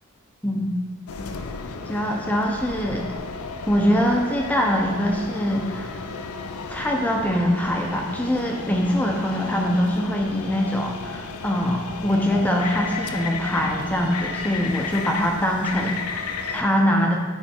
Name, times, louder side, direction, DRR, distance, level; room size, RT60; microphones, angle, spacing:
voice 1, 0.4-0.8 1.9-3.1 3.7-6.0 6.7-17.2, equal, 5° left, 0 dB, 0.6 m, -23 dB
sound 1, 1.1-16.6, left 4 dB, 85° left, 0.5 m, -33 dB
9.1 x 3.3 x 4.4 m, 1.5 s
head